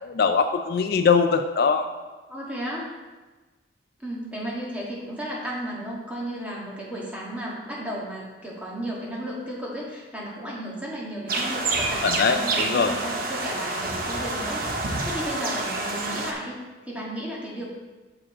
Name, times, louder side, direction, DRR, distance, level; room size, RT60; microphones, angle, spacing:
voice 1, 0.0-1.9 12.0-12.9, left 5 dB, 55° left, 7 dB, 0.4 m, -22 dB
voice 2, 2.3-2.9 4.0-17.7, equal, 10° right, -5 dB, 1.6 m, -34 dB
sound 1, 11.3-16.3, right 2 dB, 50° right, 0.9 m, -28 dB
7.3 x 5.0 x 4.8 m, 1.2 s
head